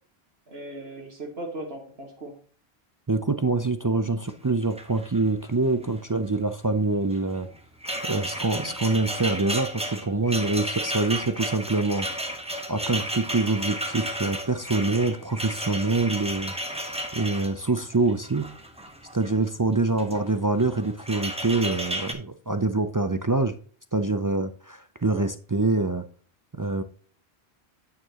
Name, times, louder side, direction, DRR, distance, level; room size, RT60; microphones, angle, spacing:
voice 1, 0.5-2.4 8.5-8.7 20.1-20.2 25.1-25.3, right 1 dB, 70° right, 0 dB, 2.1 m, -38 dB
voice 2, 3.1-7.5 8.0-12.1 12.7-16.5 17.1-18.5 19.1-23.5 23.9-26.0 26.6-26.8, right 3 dB, 35° right, 9 dB, 0.3 m, -25 dB
sound 1, 4.3-4.4 4.6-5.5 5.7-6.0 7.1-19.3 19.9-20.3 20.6-22.1, right 1 dB, 5° right, 1.1 m, -33 dB
9.4 x 6.6 x 2.9 m, 0.42 s
omnidirectional pair, 1.1 m